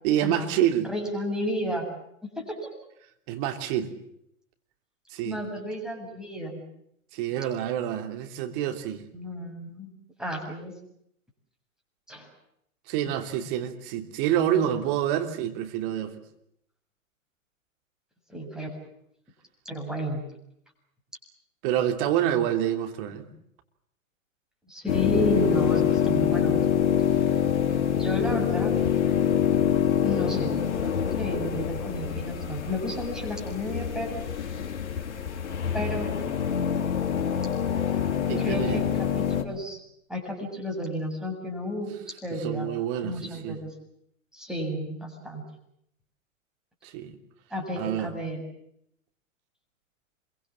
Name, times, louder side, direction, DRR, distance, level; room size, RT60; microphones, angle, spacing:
voice 1, 0.0-0.9 3.3-3.9 5.1-5.4 7.1-9.0 12.9-16.1 21.6-23.3 38.3-38.9 42.3-43.6 46.8-47.2 47.8-48.1, right 10 dB, 40° right, 6 dB, 3.3 m, -27 dB
voice 2, 0.9-1.9 2.4-2.7 5.2-6.6 9.1-9.9 10.2-10.7 12.1-12.3 18.3-18.7 19.7-20.2 24.7-26.6 28.0-28.8 30.0-30.5 30.8-34.2 35.7-36.1 38.4-38.9 39.2-39.8 40.1-42.0 42.2-42.7 43.0-43.7 44.3-45.4 47.5-48.4, equal, ahead, 0 dB, 7.4 m, -32 dB
sound 1, 24.9-39.4, left 8 dB, 55° left, 4.0 m, -26 dB
27.0 x 23.5 x 7.4 m, 0.74 s
figure-of-eight pair, 110°, 40 cm